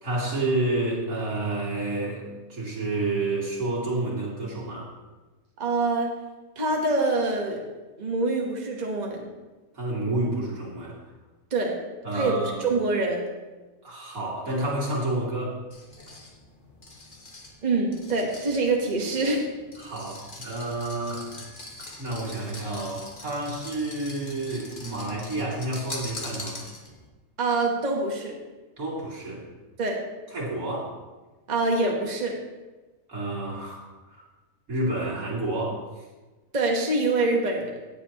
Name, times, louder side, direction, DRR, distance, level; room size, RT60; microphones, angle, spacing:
voice 1, 0.0-4.9 9.7-11.0 12.0-12.7 13.8-15.6 19.8-21.3 22.0-26.6 28.8-29.5 30.3-30.9 33.1-33.8 34.1-34.2 34.7-36.1, right 2 dB, 85° right, -5 dB, 2.9 m, -29 dB
voice 2, 5.6-6.1 6.6-7.6 8.0-9.2 11.5-11.8 12.1-13.3 17.6-19.5 27.4-28.3 29.8-30.0 31.5-32.4 36.5-37.7, right 2 dB, 30° right, 0 dB, 1.3 m, -25 dB
sound 1, 15.7-27.1, left 2 dB, 40° left, 1.6 m, -43 dB
17.5 x 7.3 x 2.9 m, 1.2 s
omnidirectional pair, 1.5 m